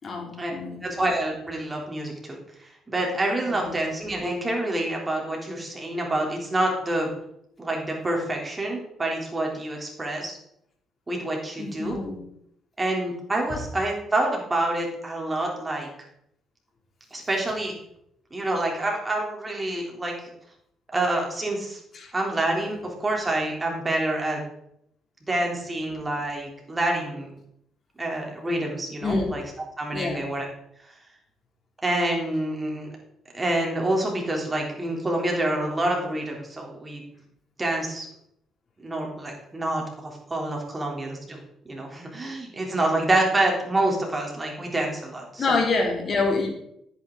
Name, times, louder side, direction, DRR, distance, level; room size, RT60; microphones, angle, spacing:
voice 1, 0.0-0.9 3.5-3.8 11.6-12.2 21.9-22.1 29.0-29.3 29.9-30.2 45.4-46.5, left 3 dB, 45° left, 1 dB, 2.9 m, -26 dB
voice 2, 0.8-7.1 7.6-10.4 11.1-12.0 12.8-15.9 17.1-17.7 18.3-20.2 20.9-21.8 22.1-24.4 25.3-27.3 28.0-29.4 29.8-30.5 31.8-32.9 33.3-37.0 37.6-38.1 38.8-41.4 41.7-45.6, right 1 dB, 20° right, 0 dB, 3.4 m, -27 dB
10.0 x 9.1 x 3.9 m, 0.74 s
cardioid pair, 90°, 0 cm